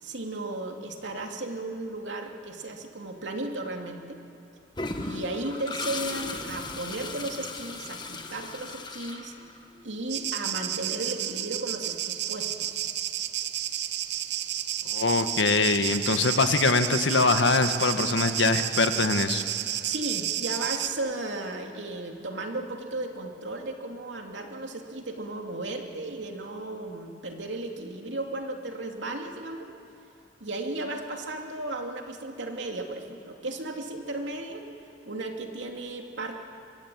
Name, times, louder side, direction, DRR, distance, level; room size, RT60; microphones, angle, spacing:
voice 1, 0.0-4.2 5.0-9.3 9.8-12.8 19.8-29.7 30.4-34.6 35.0-36.4, right 2 dB, 80° right, 2 dB, 2.8 m, -35 dB
Toilet flush, 4.8-9.8, left 3 dB, 25° left, 1.6 m, -36 dB
sound 1, 10.1-20.9, right 12 dB, 65° right, 0.9 m, -31 dB
voice 2, 14.8-19.4, left 3 dB, 90° left, 8 dB, 1.5 m, -23 dB
24.0 x 22.5 x 9.3 m, 2.6 s
head